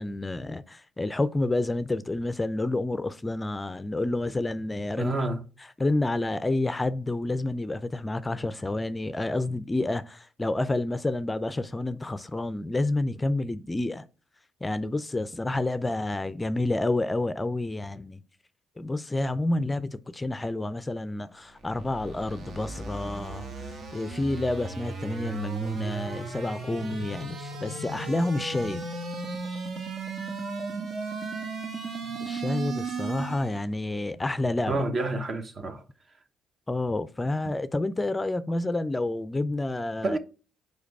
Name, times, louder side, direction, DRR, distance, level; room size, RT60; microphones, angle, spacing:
voice 1, 0.0-5.3 5.8-14.0 14.6-18.2 18.8-28.8 32.2-34.8 36.7-40.2, left 2 dB, 20° left, 0.4 m, -29 dB
voice 2, 5.0-5.4 32.0-32.1 34.7-35.8 37.4-37.5 40.0-40.2, right 2 dB, 45° right, 1.0 m, -29 dB
sound 1, 21.4-33.6, right 4 dB, 60° right, 1.4 m, -35 dB
4.9 x 4.7 x 4.6 m
supercardioid pair, 70°, 0 cm